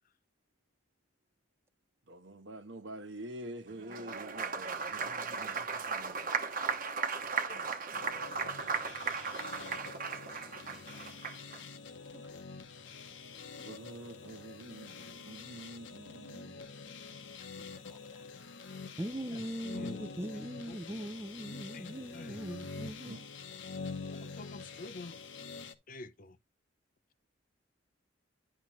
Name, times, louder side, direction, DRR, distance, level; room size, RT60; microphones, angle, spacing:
voice 1, 2.1-6.3 13.3-16.6 23.0-23.3, right 1 dB, 70° right, 1.2 m, -47 dB
Applause, 3.8-11.6, right 5 dB, 50° right, 1.1 m, -36 dB
voice 2, 7.3-7.7 19.3-19.4 19.7-20.0 20.3-20.9 21.7-22.4 24.1-25.2 25.9-26.4, left 3 dB, 45° left, 0.6 m, -48 dB
sound 1, 7.9-25.7, left 4 dB, 70° left, 1.0 m, -46 dB
voice 3, 17.4-18.0 19.0-23.1, right 1 dB, 15° right, 0.5 m, -41 dB
10.5 x 5.9 x 3.1 m
head